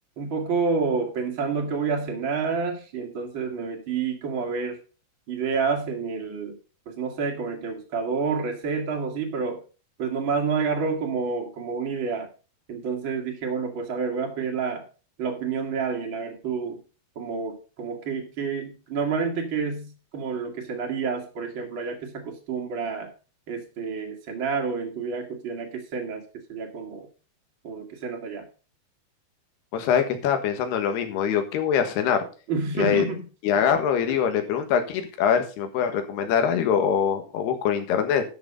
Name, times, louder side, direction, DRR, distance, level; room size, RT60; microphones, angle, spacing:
voice 1, 0.2-4.8 5.3-6.6 6.9-9.6 10.0-12.3 12.7-14.9 15.2-16.8 17.2-23.1 23.5-26.2 26.5-27.1 27.6-28.5 32.5-33.3, right 5 dB, 45° right, 1 dB, 1.8 m, -29 dB
voice 2, 29.7-32.2 32.8-33.0 33.4-38.2, left 7 dB, 85° left, 7 dB, 3.6 m, -23 dB
12.5 x 6.3 x 5.3 m, 0.35 s
omnidirectional pair, 4.6 m